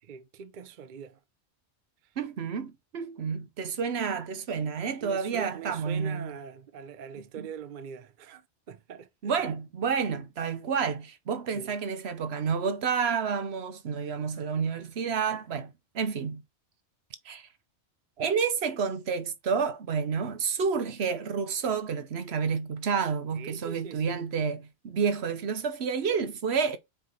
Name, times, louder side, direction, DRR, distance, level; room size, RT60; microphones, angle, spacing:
voice 1, 0.0-1.2 2.0-2.2 5.0-9.4 11.5-11.8 23.3-24.3, right 7 dB, 50° right, 0.7 m, -43 dB
voice 2, 2.2-6.3 7.4-7.5 9.2-16.4 17.2-17.5 18.2-26.8, right 6 dB, 70° right, 1.1 m, -30 dB
4.6 x 4.4 x 5.3 m
omnidirectional pair, 1.1 m